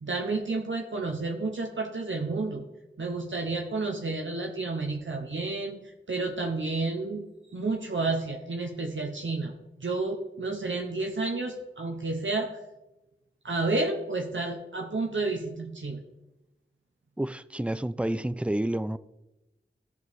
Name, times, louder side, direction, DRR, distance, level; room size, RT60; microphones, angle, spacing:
voice 1, 0.0-2.6 3.0-9.5 9.8-12.5 13.4-16.0, right 3 dB, 75° right, 0.9 m, -31 dB
voice 2, 17.2-19.0, right 1 dB, 5° right, 0.3 m, -29 dB
13.5 x 6.1 x 3.6 m
wide cardioid pair, 50°, 20 cm